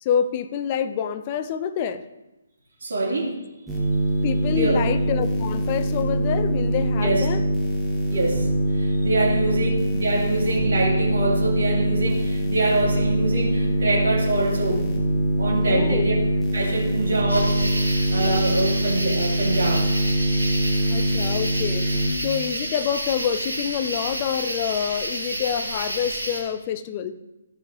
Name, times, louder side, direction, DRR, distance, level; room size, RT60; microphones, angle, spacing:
voice 1, 0.0-2.1 4.2-7.4 9.4-9.6 15.7-16.1 18.3-18.4 20.9-21.9 22.2-27.1, left 8 dB, 30° left, 11 dB, 0.5 m, -27 dB
voice 2, 2.8-3.3 4.5-4.8 7.0-7.2 8.1-8.5 8.7-14.9 15.4-16.1 16.5-19.8, right 2 dB, 55° right, -5 dB, 2.8 m, -25 dB
sound 1, 3.7-22.1, equal, 5° right, 1.4 m, -23 dB
sound 2, 17.3-26.4, right 1 dB, 85° right, 2.4 m, -30 dB
14.5 x 5.4 x 3.8 m, 1.0 s
figure-of-eight pair, 140°, 0 cm